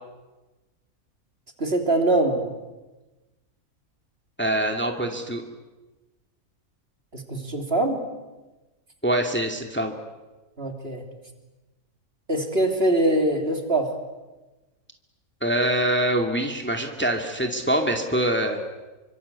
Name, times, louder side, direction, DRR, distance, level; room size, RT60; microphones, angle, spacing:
voice 1, 1.6-2.5 7.1-8.1 10.6-11.0 12.3-13.9, right 1 dB, 40° right, 4 dB, 3.5 m, -23 dB
voice 2, 4.4-5.4 9.0-9.9 15.4-18.6, right 1 dB, 5° left, 4 dB, 2.4 m, -24 dB
28.5 x 25.0 x 8.4 m, 1.1 s
omnidirectional pair, 1.6 m